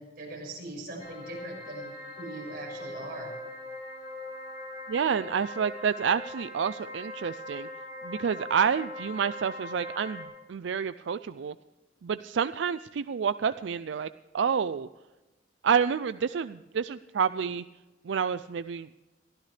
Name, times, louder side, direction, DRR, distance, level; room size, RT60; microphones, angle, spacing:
voice 1, 0.0-3.3, right 2 dB, 55° right, -1 dB, 6.2 m, -41 dB
sound 1, 1.0-10.2, left 1 dB, 60° left, 5.4 m, -41 dB
voice 2, 4.9-7.7 8.0-11.5 12.0-14.1 14.3-14.9 15.6-17.6 18.1-18.9, right 7 dB, 85° right, 13 dB, 0.4 m, -29 dB
23.5 x 14.5 x 3.4 m, 1.1 s
head